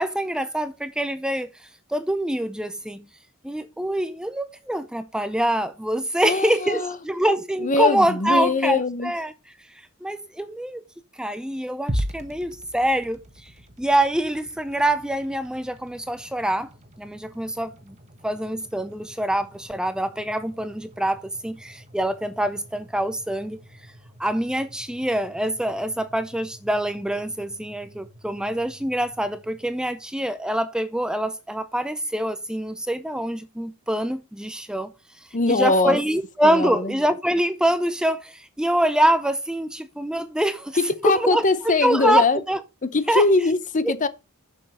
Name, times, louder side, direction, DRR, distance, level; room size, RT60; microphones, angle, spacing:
voice 1, 0.0-1.5 1.9-3.1 3.4-9.3 10.0-10.8 11.2-13.5 13.8-16.7 17.0-18.0 18.2-23.6 24.2-34.9 35.5-40.8 41.0-42.6 43.1-43.2 43.8-43.9, right 1 dB, 5° right, 0.5 m, -25 dB
voice 2, 6.2-7.0 7.6-9.1 35.3-36.0 36.4-36.9 40.8-42.4 42.8-44.1, left 3 dB, 35° left, 0.7 m, -22 dB
sound 1, 11.9-30.1, equal, 30° right, 1.3 m, -40 dB
7.5 x 6.8 x 4.4 m
head